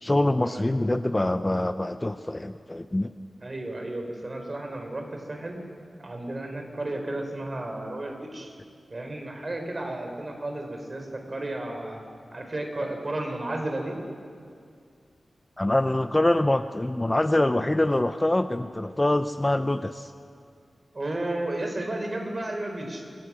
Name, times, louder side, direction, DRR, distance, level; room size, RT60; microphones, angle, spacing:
voice 1, 0.0-3.1 15.6-20.1, left 1 dB, 20° left, 9 dB, 0.7 m, -24 dB
voice 2, 3.4-5.6 6.0-8.5 8.9-12.0 12.3-14.0 20.9-23.1, right 1 dB, 35° right, 3 dB, 4.5 m, -33 dB
28.0 x 25.5 x 6.3 m, 2.3 s
wide cardioid pair, 105°, 0 cm